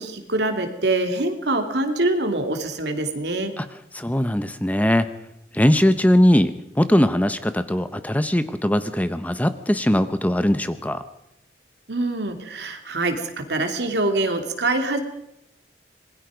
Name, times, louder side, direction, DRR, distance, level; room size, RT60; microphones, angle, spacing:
voice 1, 0.0-3.5 11.9-15.0, right 2 dB, 70° right, 6 dB, 2.9 m, -24 dB
voice 2, 3.9-5.1 5.5-11.0, left 1 dB, 10° left, 11 dB, 0.9 m, -20 dB
26.5 x 21.5 x 5.1 m, 0.80 s
head